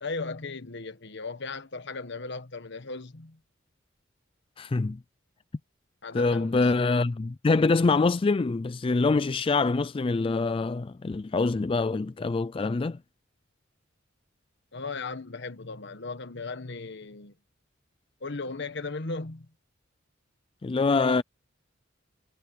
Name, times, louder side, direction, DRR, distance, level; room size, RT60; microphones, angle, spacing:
voice 1, 0.0-3.4 6.0-7.0 14.7-17.3 18.2-19.5, left 3 dB, 65° left, 1.4 m, -37 dB
voice 2, 4.6-5.0 6.1-13.0 20.6-21.2, left 3 dB, 30° left, 0.4 m, -25 dB
head